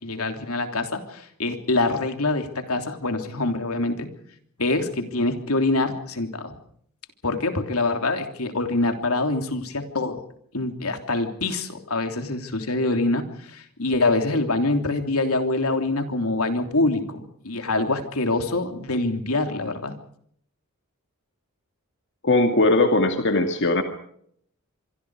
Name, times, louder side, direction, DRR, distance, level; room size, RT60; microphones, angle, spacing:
voice 1, 0.0-4.1 4.6-6.5 7.2-10.2 10.5-20.0, left 2 dB, 80° left, 6 dB, 3.2 m, -25 dB
voice 2, 22.2-23.8, left 2 dB, 55° left, 5 dB, 2.2 m, -19 dB
26.0 x 25.0 x 4.9 m, 0.66 s
head